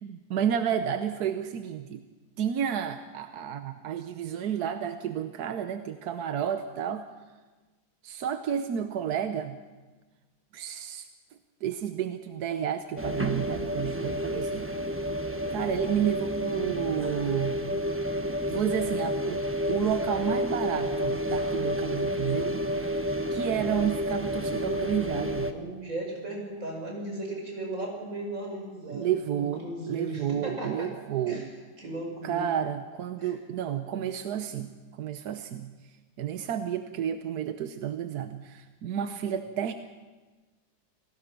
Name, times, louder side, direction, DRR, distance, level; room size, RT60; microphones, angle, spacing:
voice 1, 0.0-2.0 2.4-7.1 8.0-9.6 10.5-11.1 11.6-14.7 15.5-17.6 18.5-19.4 19.7-23.0 23.3-25.5 28.9-31.4 32.2-35.7 36.2-39.7, right 9 dB, 60° right, 8 dB, 1.1 m, -31 dB
sound 1, 13.0-25.5, equal, 10° right, 0.8 m, -30 dB
voice 2, 25.5-30.9 31.3-31.4 31.8-32.5 33.2-33.3, right 1 dB, 35° right, 1 dB, 5.8 m, -36 dB
28.0 x 18.0 x 6.0 m, 1.3 s
omnidirectional pair, 2.3 m